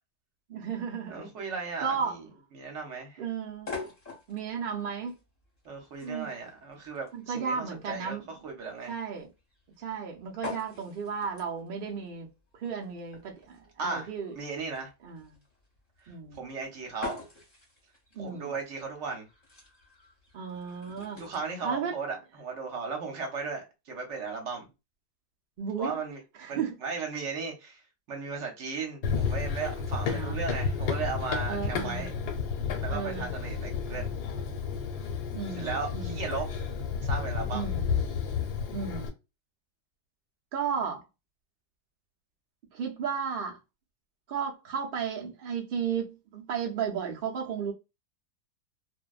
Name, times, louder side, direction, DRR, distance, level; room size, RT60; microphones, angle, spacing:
voice 1, 0.5-1.3 1.8-2.2 3.2-3.8 4.3-5.2 6.0-6.3 7.1-8.2 8.9-9.3 9.8-12.3 12.6-14.3 15.0-15.2 16.1-16.4 18.1-18.5 20.3-21.2 21.6-22.0 25.6-26.0 26.4-26.7 30.0-30.4 31.5-32.1 32.9-33.3 35.3-36.3 37.5-37.8 38.7-39.1 40.5-41.0 42.7-43.6 44.3-47.7, right 6 dB, 80° right, 0.4 m, -34 dB
voice 2, 1.1-2.3 2.5-3.2 5.6-8.2 8.4-8.9 13.8-14.1 14.3-14.9 16.0-17.2 18.2-19.3 21.2-24.7 25.8-26.2 26.5-27.8 28.1-32.1 32.8-34.1 35.6-36.5 37.0-37.7, right 4 dB, 55° right, 1.0 m, -36 dB
sound 1, 3.5-21.4, left 4 dB, 35° left, 0.8 m, -46 dB
Run, 29.0-39.1, left 6 dB, 80° left, 1.2 m, -31 dB
2.6 x 2.2 x 2.3 m
omnidirectional pair, 1.7 m